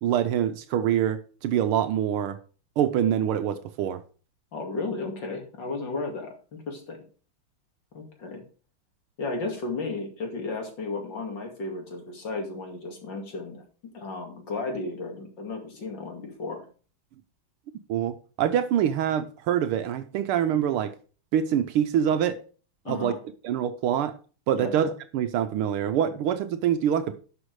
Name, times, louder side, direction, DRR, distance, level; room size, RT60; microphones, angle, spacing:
voice 1, 0.0-2.4 2.8-4.0 17.9-20.9 21.3-22.4 22.9-23.2 23.4-24.1 24.5-27.1, right 9 dB, 80° right, 1.6 m, -25 dB
voice 2, 4.5-7.0 7.9-8.4 9.2-13.6 13.9-16.7 22.8-23.2 24.5-24.7, left 3 dB, 55° left, 3.0 m, -34 dB
11.5 x 6.1 x 4.7 m
omnidirectional pair, 2.4 m